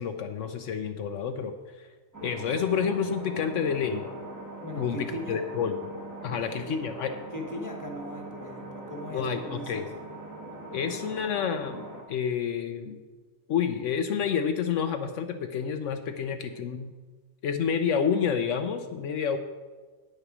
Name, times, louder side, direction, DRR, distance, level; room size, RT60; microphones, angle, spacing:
voice 1, 0.0-1.9 2.2-4.1 4.8-5.0 5.3-5.7 6.2-7.1 9.1-9.8 10.7-13.0 13.5-16.9 17.4-19.4, left 7 dB, 75° left, 7 dB, 1.0 m, -29 dB
sound 1, 2.1-12.0, right 1 dB, 15° right, 1.3 m, -42 dB
voice 2, 4.6-5.4 6.3-6.8 7.3-9.9 10.8-11.2, left 1 dB, 15° left, 2 dB, 1.2 m, -39 dB
9.5 x 6.6 x 6.0 m, 1.3 s
omnidirectional pair, 1.3 m